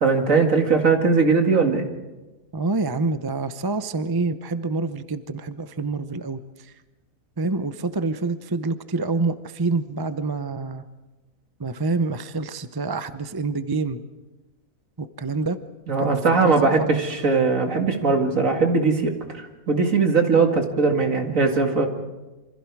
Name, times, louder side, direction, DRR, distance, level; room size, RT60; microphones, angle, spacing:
voice 1, 0.0-1.8 15.9-21.9, right 4 dB, 60° right, 4 dB, 2.5 m, -20 dB
voice 2, 2.5-6.7 7.4-10.8 11.6-14.0 15.0-15.6 16.0-16.2 16.4-16.7 16.9-17.4, right 3 dB, 25° right, 11 dB, 0.5 m, -27 dB
27.0 x 25.5 x 4.8 m, 1.1 s
omnidirectional pair, 1.6 m